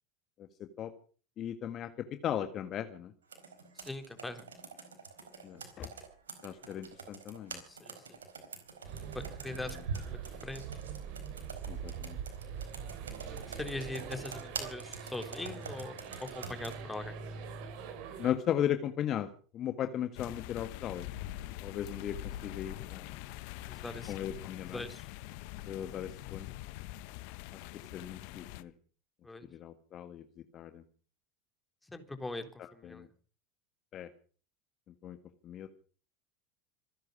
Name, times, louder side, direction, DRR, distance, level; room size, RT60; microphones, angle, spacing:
voice 1, 0.4-0.9 1.4-3.1 5.4-5.9 6.4-7.6 11.7-12.2 18.2-19.3 19.5-21.1 21.6-23.2 24.1-24.8 25.7-26.5 27.9-28.7 29.5-30.2 30.5-30.8 32.6-33.1 33.9-34.1 35.0-35.2 35.4-35.7, left 10 dB, 45° left, 9 dB, 1.7 m, -37 dB
Computer keyboard, 3.3-16.8, right 5 dB, 85° right, 4.5 m, -45 dB
voice 2, 3.7-4.5 7.6-8.2 9.1-9.8 10.1-10.7 13.3-17.1 23.6-24.1 24.7-25.1 29.2-29.5 31.8-33.1, left 2 dB, 10° left, 7 dB, 3.8 m, -42 dB
sound 1, 8.8-18.3, right 7 dB, 60° right, 4.3 m, -43 dB
sound 2, 20.1-28.6, left 15 dB, 60° left, 1.1 m, -44 dB
26.5 x 10.5 x 5.1 m, 0.41 s
hypercardioid pair, 80°, 0 cm